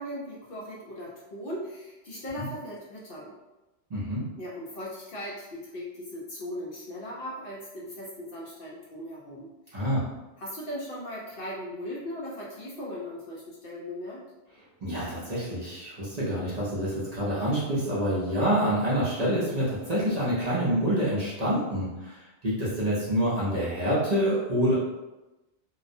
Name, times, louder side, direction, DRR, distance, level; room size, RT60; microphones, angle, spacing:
voice 1, 0.0-3.3 4.4-9.9 10.4-14.2, equal, 60° left, -5 dB, 0.6 m, -38 dB
voice 2, 3.9-4.2 9.7-10.0 14.8-24.7, equal, 45° right, -8 dB, 0.6 m, -27 dB
2.3 x 2.1 x 2.5 m, 1.0 s
omnidirectional pair, 1.2 m